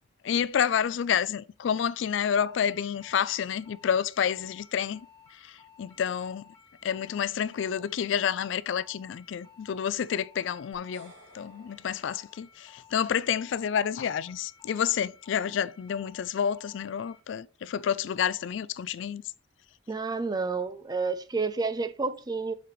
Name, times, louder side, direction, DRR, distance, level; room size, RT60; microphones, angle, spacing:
voice 1, 0.2-5.0 5.4-6.5 6.8-19.2, left 8 dB, 65° left, 0.3 m, -29 dB
sound 1, 2.4-17.2, left 6 dB, 15° left, 2.5 m, -56 dB
sound 2, 10.7-13.0, right 1 dB, 75° right, 2.6 m, -56 dB
voice 2, 19.9-22.5, right 4 dB, 20° right, 0.5 m, -30 dB
7.5 x 5.1 x 3.1 m
head